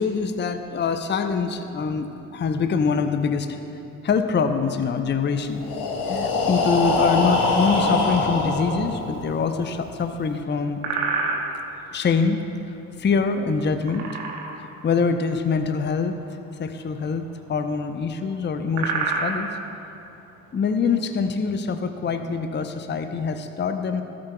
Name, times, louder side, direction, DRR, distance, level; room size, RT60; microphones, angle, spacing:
voice 1, 0.0-2.1 2.3-3.6 4.0-5.6 6.1-10.8 11.8-14.2 14.6-17.2 17.5-19.6 20.5-24.0, left 5 dB, 25° left, 8 dB, 0.7 m, -24 dB
Breathing, 5.5-9.4, left 3 dB, 60° left, 1.6 m, -23 dB
sound 1, 9.2-9.7 10.1-10.4 10.7-11.9 13.7-14.8 15.1-15.2 15.5-15.8 16.7-17.8 18.1-18.2 18.5-21.3, right 4 dB, 75° right, 1.1 m, -28 dB
17.0 x 8.8 x 2.3 m, 2.8 s
figure-of-eight pair, 40°, 42 cm